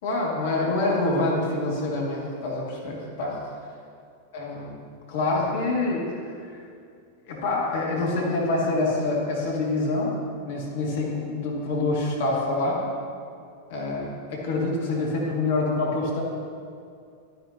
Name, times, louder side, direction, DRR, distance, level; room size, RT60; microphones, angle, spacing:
voice 1, 0.0-3.4 4.3-4.8 5.1-6.3 7.3-10.1 10.5-12.8 13.7-16.2, left 2 dB, 55° left, -3 dB, 2.3 m, -26 dB
12.0 x 10.5 x 2.9 m, 2.3 s
figure-of-eight pair, 90°, 0 cm